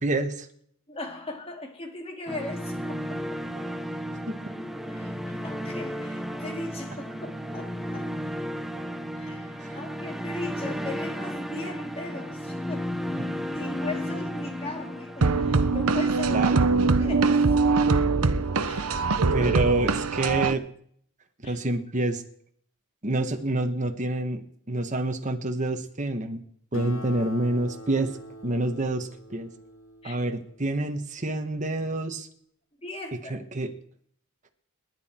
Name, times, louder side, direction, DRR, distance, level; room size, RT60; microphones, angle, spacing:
voice 1, 0.0-0.5 4.3-4.4 9.6-9.8 16.3-16.7 19.3-20.6 21.4-22.2 23.0-24.4 24.7-26.4 26.7-28.1 28.4-29.5 30.0-32.3 33.3-33.7, right 2 dB, 35° right, 1.4 m, -27 dB
voice 2, 0.9-3.2 4.9-8.1 9.1-13.2 13.5-17.5 18.6-19.6 21.4-21.6 30.0-30.2 32.8-33.3, left 2 dB, 25° left, 2.8 m, -39 dB
sound 1, 2.3-16.4, equal, ahead, 1.0 m, -34 dB
sound 2, 15.2-20.5, right 4 dB, 75° right, 0.9 m, -22 dB
Acoustic guitar, 26.7-31.6, left 1 dB, 60° left, 1.8 m, -44 dB
28.5 x 11.0 x 4.4 m
head